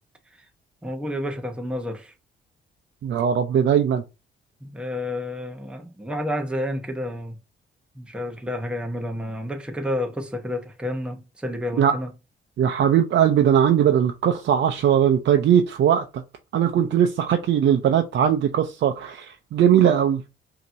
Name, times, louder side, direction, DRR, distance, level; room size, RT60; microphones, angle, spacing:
voice 1, 0.8-2.1 4.6-7.4 7.9-12.1 16.7-16.9, left 1 dB, 5° right, 1.0 m, -30 dB
voice 2, 3.0-4.0 11.8-12.0 12.6-16.2 16.5-20.2, right 9 dB, 65° right, 0.6 m, -19 dB
5.2 x 2.9 x 2.6 m
cardioid pair, 90°, 20 cm